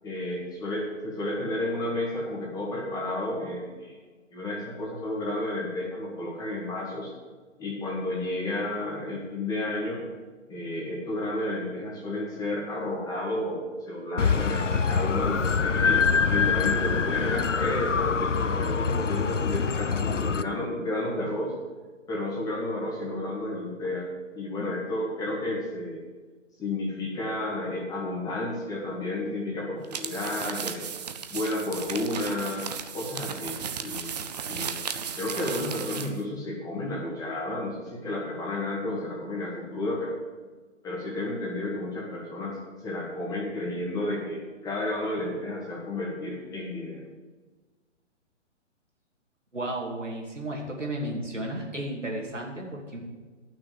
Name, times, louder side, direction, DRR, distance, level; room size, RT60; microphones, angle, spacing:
voice 1, 0.0-4.0 4.3-7.1 7.6-10.0 10.5-21.5 22.1-24.1 24.3-26.0 26.6-30.9 31.3-32.7 32.9-34.8 35.2-40.2 40.8-47.0, left 1 dB, 10° left, -3 dB, 1.9 m, -31 dB
sound 1, 14.2-20.4, left 5 dB, 90° left, 0.6 m, -25 dB
sound 2, 29.8-36.2, right 7 dB, 35° right, 0.7 m, -35 dB
voice 2, 49.5-53.0, right 1 dB, 85° right, -1 dB, 2.8 m, -33 dB
12.0 x 6.1 x 7.5 m, 1.4 s
figure-of-eight pair, 130°, 36 cm